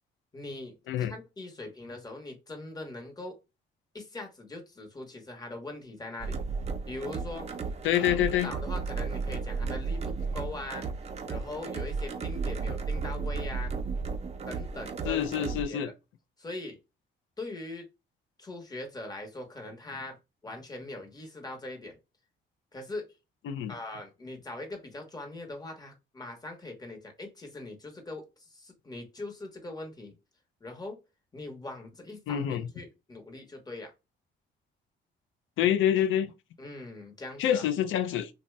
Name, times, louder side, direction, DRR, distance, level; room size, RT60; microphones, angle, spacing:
voice 1, 0.3-3.4 3.9-6.4 6.9-7.5 8.0-10.9 11.3-13.7 14.5-15.8 16.4-16.8 17.4-17.9 18.4-20.2 20.4-22.0 22.7-23.1 23.7-30.2 30.6-31.0 31.3-33.9 36.6-37.6, left 2 dB, 20° left, 0.9 m, -41 dB
sound 1, 6.2-15.6, right 4 dB, 35° right, 0.5 m, -34 dB
voice 2, 7.8-8.6 15.0-15.9 23.5-23.7 32.3-32.7 35.6-36.3 37.4-38.3, left 10 dB, 80° left, 0.5 m, -26 dB
2.7 x 2.1 x 3.2 m
cardioid pair, 90°, 20 cm